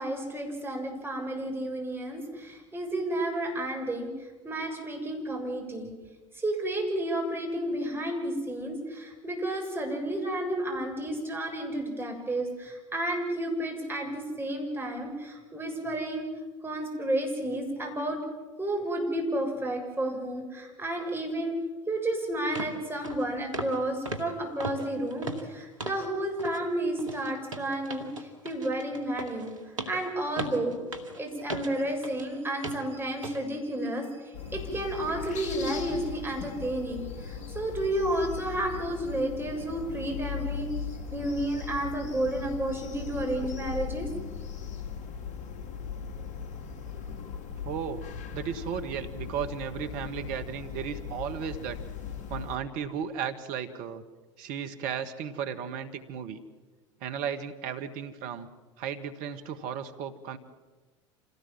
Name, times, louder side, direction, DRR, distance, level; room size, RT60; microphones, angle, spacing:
voice 1, 0.0-5.9 6.3-16.3 16.6-18.2 18.6-21.6 21.9-29.5 29.9-30.8 31.2-40.7 41.1-44.1, right 1 dB, 15° right, 1 dB, 7.2 m, -31 dB
sound 1, 21.9-22.0 22.6-22.8 23.0-23.2 23.5-23.8 24.1-26.1 26.4-26.6 27.0-32.3 32.6-32.9 33.2-33.4 33.9-34.0, right 1 dB, 85° right, 2.2 m, -38 dB
sound 2, 34.3-52.6, left 6 dB, 50° left, 2.8 m, -38 dB
voice 2, 47.6-48.1 48.3-51.8 52.3-54.0 54.4-56.4 57.0-58.5 58.8-60.4, right 7 dB, 60° right, 8 dB, 1.9 m, -35 dB
27.0 x 18.0 x 7.5 m, 1.3 s
hypercardioid pair, 70°, 16 cm